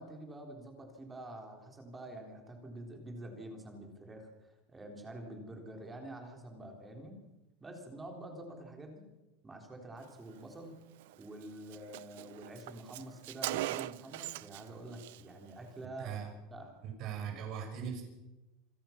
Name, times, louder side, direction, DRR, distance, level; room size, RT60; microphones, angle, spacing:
voice 1, 0.0-7.2 7.6-9.1 9.4-10.7 11.2-16.8, right 1 dB, 10° right, 3 dB, 3.8 m, -47 dB
Car, 11.0-11.1 11.4-11.5 11.7-14.7 14.9-15.2, right 17 dB, 70° right, 0.6 m, -40 dB
voice 2, 16.8-18.0, right 8 dB, 40° right, 4 dB, 5.5 m, -39 dB
27.5 x 17.0 x 6.0 m, 1.0 s
supercardioid pair, 170°, 0 cm